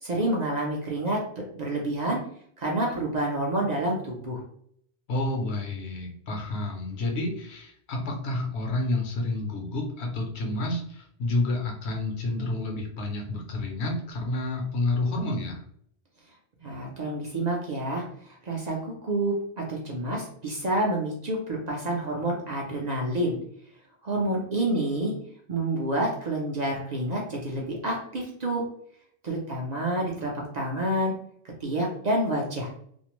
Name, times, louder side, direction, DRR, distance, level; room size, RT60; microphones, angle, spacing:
voice 1, 0.0-2.2 2.6-4.4 16.6-23.4 24.0-25.1 25.5-28.6 29.2-31.1 31.6-32.7, right 1 dB, 50° right, -2 dB, 0.6 m, -28 dB
voice 2, 5.1-15.6, left 2 dB, 75° left, 0 dB, 1.0 m, -29 dB
2.5 x 2.0 x 2.9 m, 0.65 s
omnidirectional pair, 1.1 m